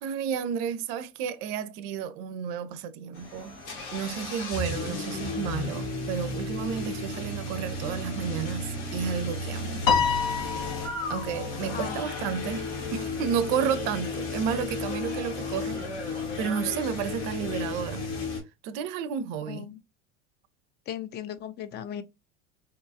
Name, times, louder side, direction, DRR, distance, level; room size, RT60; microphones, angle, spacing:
voice 1, 0.0-3.6 3.9-9.9 11.1-18.1 18.6-19.7, right 7 dB, 55° right, 0.5 m, -32 dB
sound 1, 3.1-18.4, left 3 dB, 75° left, 1.3 m, -34 dB
Piano, 9.9-11.4, left 6 dB, 60° left, 0.7 m, -26 dB
voice 2, 19.5-19.8 20.9-22.0, left 10 dB, 30° left, 0.4 m, -36 dB
2.8 x 2.3 x 2.5 m
hypercardioid pair, 85°, 36 cm